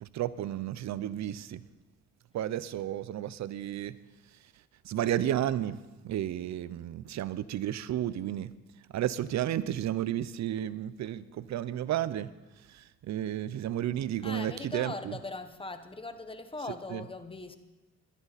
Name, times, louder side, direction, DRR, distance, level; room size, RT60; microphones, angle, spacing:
voice 1, 0.0-1.6 2.3-4.0 4.8-5.8 6.0-8.5 8.9-12.3 12.7-15.2 16.9-17.0, right 11 dB, 65° right, 16 dB, 0.7 m, -32 dB
voice 2, 14.2-17.6, left 2 dB, 15° left, 9 dB, 1.2 m, -40 dB
21.0 x 10.5 x 4.2 m, 1.1 s
cardioid pair, 90°, 30 cm